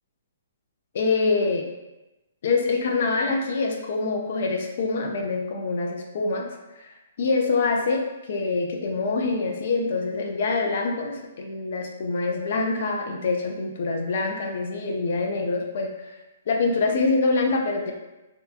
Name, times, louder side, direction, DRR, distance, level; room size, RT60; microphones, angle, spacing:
voice 1, 0.9-1.6 2.4-6.5 6.8-6.9 7.2-8.0 8.3-16.1 16.5-17.9, left 3 dB, 55° left, 2 dB, 0.4 m, -25 dB
2.7 x 2.2 x 2.5 m, 1.0 s
hypercardioid pair, 160°, 0 cm